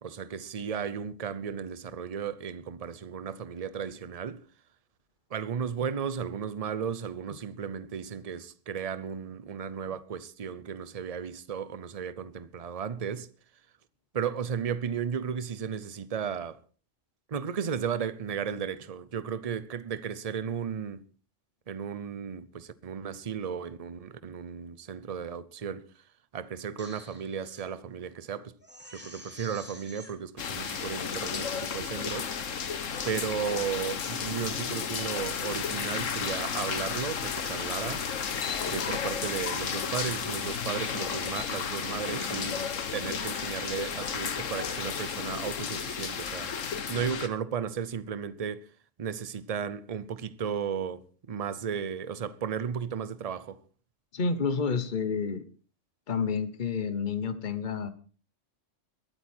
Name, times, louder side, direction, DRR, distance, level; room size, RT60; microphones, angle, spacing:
voice 1, 0.0-4.4 5.3-13.3 14.1-16.6 17.3-21.1 21.7-26.0 26.3-28.6 28.9-32.7 33.0-38.1 38.7-42.7 42.9-48.7 49.0-53.6, right 7 dB, 35° right, 0.7 m, -35 dB
Crying sobbing, 26.6-27.6 28.1-28.2 28.6-30.1 30.8-30.9 31.2-31.6 32.1-32.5 33.0-33.4 33.8-34.5 35.0-35.3, equal, 10° right, 3.0 m, -51 dB
sound 1, 30.4-47.3, left 6 dB, 80° left, 1.5 m, -33 dB
voice 2, 54.1-55.4 56.1-57.9, left 5 dB, 40° left, 1.2 m, -29 dB
21.5 x 8.9 x 4.5 m
omnidirectional pair, 1.3 m